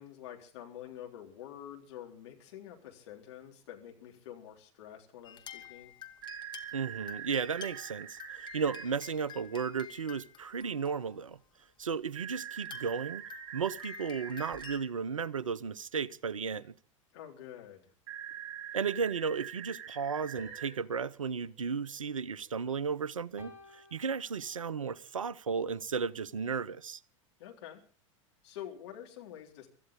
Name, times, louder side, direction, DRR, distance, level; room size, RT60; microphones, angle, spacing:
voice 1, 0.0-5.9 17.1-17.9 27.4-27.8 28.4-29.7, left 11 dB, 55° left, 3.8 m, -47 dB
sound 1, 5.2-11.3 11.9-12.0 12.6-14.8, left 9 dB, 25° left, 1.8 m, -50 dB
sound 2, 6.2-8.8 12.1-14.8 18.1-20.7, right 9 dB, 55° right, 5.7 m, -44 dB
voice 2, 6.7-11.4 11.8-13.2 13.5-16.7 18.7-27.0, right 6 dB, 75° right, 0.7 m, -34 dB
sound 3, 20.4-22.8 23.4-24.9, left 3 dB, 10° right, 5.8 m, -58 dB
24.5 x 14.0 x 3.8 m
figure-of-eight pair, 85°, 17 cm